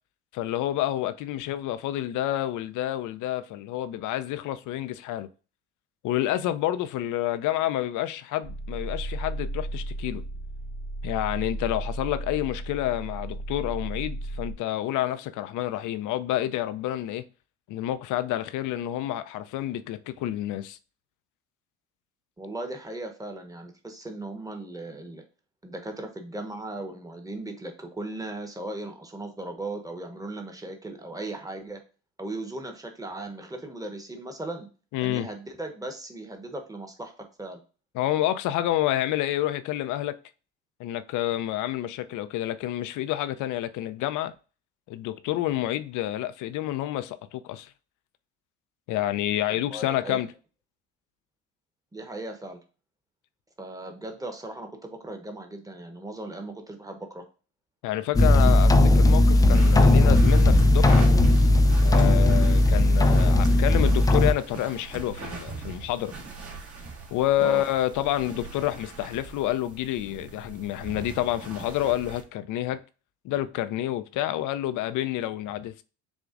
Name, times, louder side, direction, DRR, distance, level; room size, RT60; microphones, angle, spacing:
voice 1, 0.3-5.3 6.0-10.2 11.0-17.2 17.7-20.8 34.9-35.3 37.9-40.2 40.8-44.3 44.9-47.7 48.9-50.3 57.8-61.1 61.8-66.1 67.1-72.8 73.2-75.8, left 13 dB, 65° left, 0.5 m, -29 dB
sound 1, 8.4-14.5, right 1 dB, 60° right, 1.1 m, -34 dB
voice 2, 22.4-25.2 25.6-31.8 32.2-34.7 35.0-37.1 37.4-37.6 49.5-50.2 51.9-52.6 53.6-57.2 67.4-67.6, right 2 dB, 10° right, 1.1 m, -37 dB
sound 2, 58.1-64.3, left 1 dB, 10° left, 0.3 m, -17 dB
sound 3, 59.5-72.2, right 4 dB, 45° right, 1.4 m, -40 dB
7.0 x 2.4 x 2.5 m
supercardioid pair, 70°, 34 cm